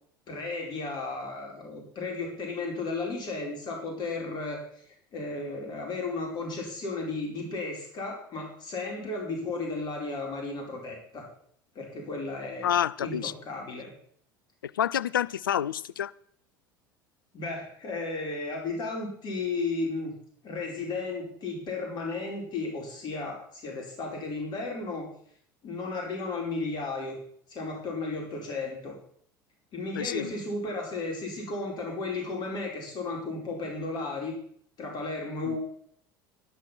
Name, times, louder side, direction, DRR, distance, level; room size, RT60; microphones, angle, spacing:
voice 1, 0.3-4.6 5.1-11.3 11.7-12.7 13.0-13.9 17.3-20.1 20.4-25.1 25.6-27.2 27.5-29.0 29.7-34.4 34.8-35.6, left 3 dB, 40° left, 5.0 m, -34 dB
voice 2, 12.6-13.3 14.6-16.1 30.0-30.3 35.5-35.6, left 10 dB, 75° left, 0.5 m, -28 dB
11.5 x 10.5 x 6.0 m
figure-of-eight pair, 70°, 11 cm